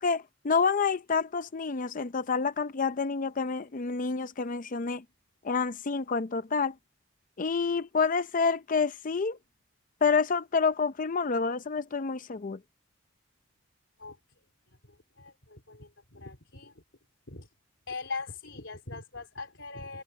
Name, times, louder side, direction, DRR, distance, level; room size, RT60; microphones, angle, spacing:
voice 1, 0.0-5.0 5.4-6.7 7.4-9.4 10.0-12.6, left 5 dB, 45° left, 0.6 m, -28 dB
voice 2, 14.7-16.8 17.3-17.5 17.9-20.0, left 4 dB, 75° left, 3.9 m, -41 dB
head